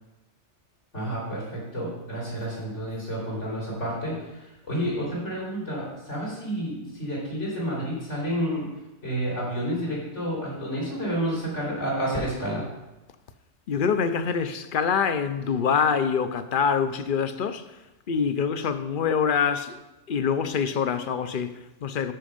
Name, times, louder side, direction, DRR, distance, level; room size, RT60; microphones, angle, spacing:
voice 1, 0.9-4.2 4.7-8.7 9.0-12.6, equal, 80° left, 4.1 m, -30 dB
voice 2, 13.7-17.6 18.1-19.8 20.1-22.1, left 6 dB, 55° left, 0.7 m, -25 dB
13.5 x 5.3 x 5.0 m
omnidirectional pair, 1.2 m